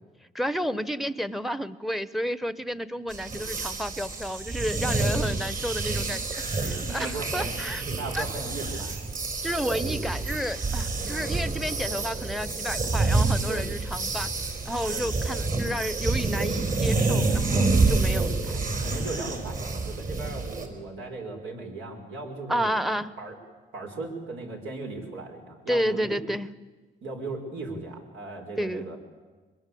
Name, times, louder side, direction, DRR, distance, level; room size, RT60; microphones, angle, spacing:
voice 1, 0.3-7.8 8.1-8.2 9.4-14.3 14.6-18.7 22.5-23.2 25.7-26.5 28.6-28.9, equal, ahead, 15 dB, 1.0 m, -31 dB
sound 1, 3.1-20.7, right 3 dB, 45° right, 4.6 m, -28 dB
voice 2, 6.8-9.0 13.5-13.6 14.9-15.0 18.7-22.7 23.2-23.4 23.7-26.2 27.0-29.0, right 2 dB, 75° right, 2 dB, 5.7 m, -37 dB
24.5 x 21.5 x 8.6 m, 1.3 s
cardioid pair, 90°, 20 cm